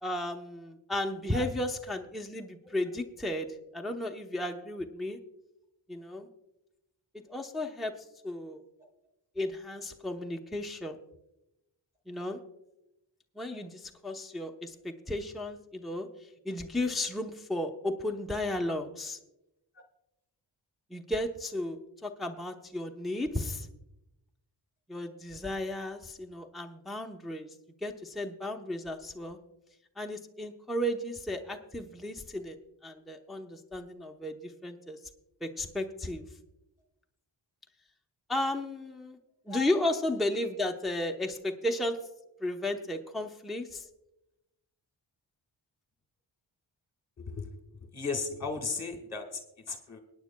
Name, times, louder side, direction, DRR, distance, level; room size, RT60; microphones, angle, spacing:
voice 1, 0.0-3.5 3.7-5.2 5.9-6.3 7.3-7.9 8.2-8.6 9.4-11.0 12.1-12.4 13.4-16.1 16.4-19.2 20.9-23.7 24.9-27.5 27.8-29.4 30.0-32.6 32.8-35.0 35.4-36.2 38.3-39.2 39.5-42.0 42.4-43.9, left 1 dB, ahead, 2 dB, 0.8 m, -34 dB
voice 2, 47.2-47.5 47.9-50.0, left 4 dB, 35° left, 3 dB, 1.5 m, -36 dB
24.0 x 9.4 x 2.2 m, 0.90 s
wide cardioid pair, 80°, 46 cm